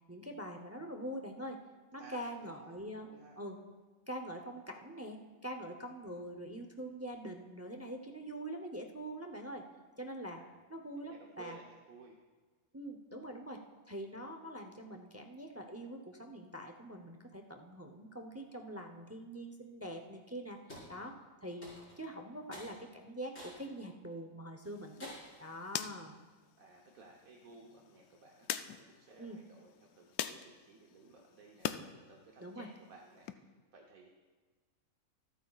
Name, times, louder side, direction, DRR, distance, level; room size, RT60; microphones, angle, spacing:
voice 1, 0.1-1.6 1.9-3.1 3.4-3.6 4.1-9.6 10.0-10.4 10.7-11.6 12.7-20.6 20.9-25.1 25.4-26.2 29.2-29.4 32.4-32.7, right 1 dB, 20° right, 4 dB, 0.3 m, -44 dB
voice 2, 2.0-3.4 10.2-10.5 11.0-12.2 26.6-34.1, right 3 dB, 70° right, -1 dB, 1.4 m, -57 dB
sound 1, 20.7-20.9 21.6-22.0 22.5-22.7 23.3-23.6 24.1-24.2 25.0-25.4, left 1 dB, 60° left, 5.2 m, -49 dB
sound 2, 24.6-31.8 32.2-33.3, left 10 dB, 80° left, 1.0 m, -44 dB
25.5 x 9.1 x 2.4 m, 1.4 s
omnidirectional pair, 1.5 m